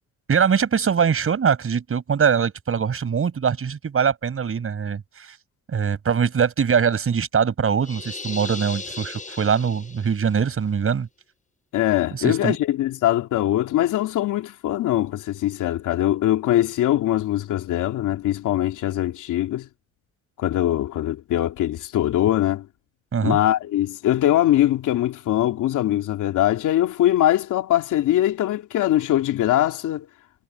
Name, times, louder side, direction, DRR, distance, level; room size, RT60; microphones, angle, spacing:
voice 1, 0.3-5.4 5.7-11.1 12.1-12.6 23.1-23.4, right 7 dB, 45° right, 7.1 m, -22 dB
sound 1, 7.8-10.4, left 4 dB, 25° left, 6.2 m, -36 dB
voice 2, 11.7-19.7 20.4-22.7 23.2-30.1, left 13 dB, 80° left, 2.9 m, -22 dB
cardioid pair, 90°, 30 cm